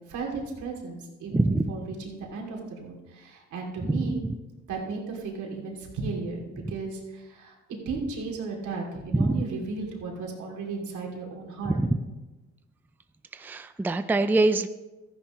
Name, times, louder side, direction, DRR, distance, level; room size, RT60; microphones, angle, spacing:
voice 1, 0.1-4.2 4.7-11.8, right 4 dB, 80° right, 0 dB, 2.7 m, -35 dB
voice 2, 1.3-1.7 3.8-4.1 9.1-9.4 11.6-12.0 13.3-14.7, right 2 dB, 5° right, 10 dB, 0.4 m, -24 dB
14.0 x 10.0 x 3.1 m, 1.1 s
cardioid pair, 90°, 30 cm